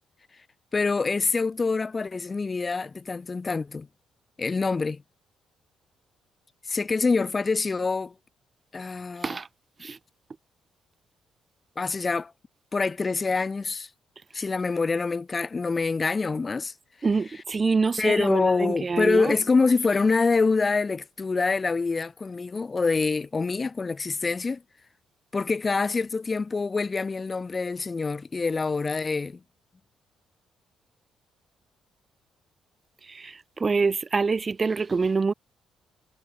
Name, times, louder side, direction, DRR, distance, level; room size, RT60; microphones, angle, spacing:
voice 1, 0.7-3.9 4.4-5.0 6.7-8.1 8.7-9.4 11.8-12.3 12.7-13.9 14.3-16.7 17.1-17.4 18.0-24.6 25.3-29.4, left 4 dB, 30° left, 2.8 m, -26 dB
voice 2, 17.0-19.2 33.2-33.3 33.6-35.3, right 4 dB, 30° right, 1.8 m, -25 dB
cardioid pair, 90°, 0 cm